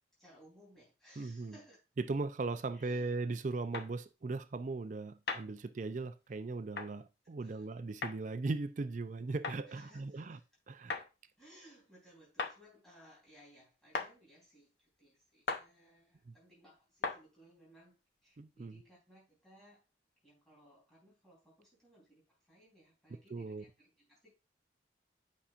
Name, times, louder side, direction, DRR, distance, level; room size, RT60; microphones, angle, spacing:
voice 1, 0.2-1.8 2.7-3.2 7.2-7.7 9.7-10.4 11.4-19.8 20.2-24.3, equal, ahead, 3.6 m, -62 dB
voice 2, 1.2-1.6 2.0-10.4 10.7-11.0 16.3-16.4 18.4-18.8 23.3-23.6, right 3 dB, 40° right, 0.4 m, -38 dB
sound 1, 3.7-3.9 5.3-5.5 6.8-6.9 8.0-8.2 9.4-9.6 10.9-11.1 12.4-12.6 13.9-14.1 15.5-15.7 17.0-17.2, left 4 dB, 60° left, 0.8 m, -36 dB
8.5 x 5.6 x 2.5 m
head